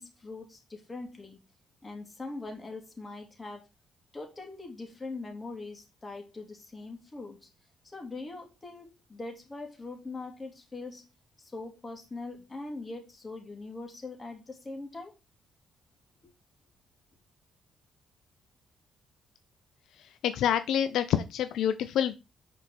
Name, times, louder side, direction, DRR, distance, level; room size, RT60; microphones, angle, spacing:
voice 1, 0.0-1.4 1.8-3.7 4.1-7.5 7.9-11.0 11.4-15.1, left 3 dB, 25° left, 2 dB, 2.7 m, -42 dB
voice 2, 19.9-22.2, left 9 dB, 80° left, 10 dB, 0.6 m, -27 dB
6.2 x 4.4 x 5.0 m, 0.26 s
cardioid pair, 90°, 0 cm